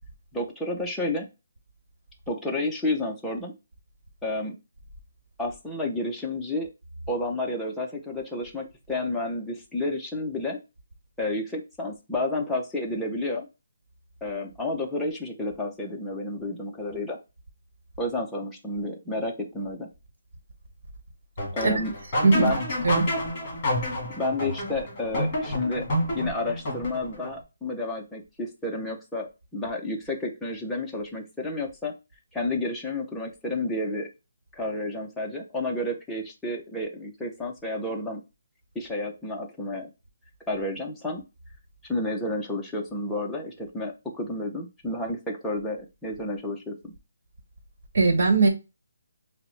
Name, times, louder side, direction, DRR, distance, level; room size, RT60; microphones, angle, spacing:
voice 1, 0.3-1.3 2.3-3.5 4.2-4.6 5.4-6.7 7.1-10.6 11.2-13.5 14.2-17.2 18.0-19.9 21.5-21.9 22.3-22.6 24.2-25.9 26.1-31.9 32.3-34.1 34.5-38.2 38.7-39.9 40.5-41.2 41.9-46.9, left 2 dB, 5° left, 0.5 m, -30 dB
sound 1, 21.4-27.3, left 1 dB, 20° left, 1.5 m, -29 dB
voice 2, 47.9-48.5, right 3 dB, 55° right, 1.1 m, -19 dB
5.7 x 2.1 x 3.1 m
hypercardioid pair, 175°, 0 cm